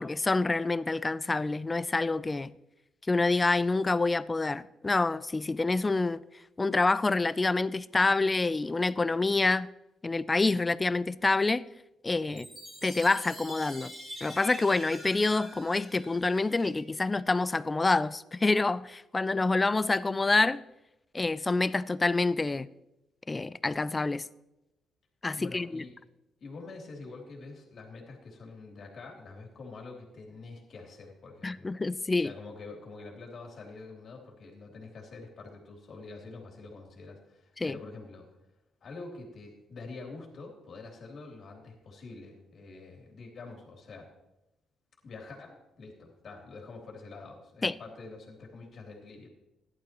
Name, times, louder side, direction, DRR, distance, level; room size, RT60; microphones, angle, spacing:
voice 1, 0.0-2.5 3.1-6.2 6.6-9.7 10.0-11.6 12.0-12.5 12.8-13.9 14.2-20.6 21.1-22.7 23.3-24.2 25.2-25.8 31.4-32.3 37.6-37.8 47.6-47.7, left 3 dB, 20° left, 0.4 m, -27 dB
Chime, 12.3-16.8, equal, 25° right, 3.2 m, -45 dB
voice 2, 25.4-25.9 26.4-31.7 32.2-38.3 38.8-44.1 45.0-49.3, left 3 dB, 55° left, 3.1 m, -46 dB
14.5 x 11.5 x 3.0 m
cardioid pair, 90°, 0 cm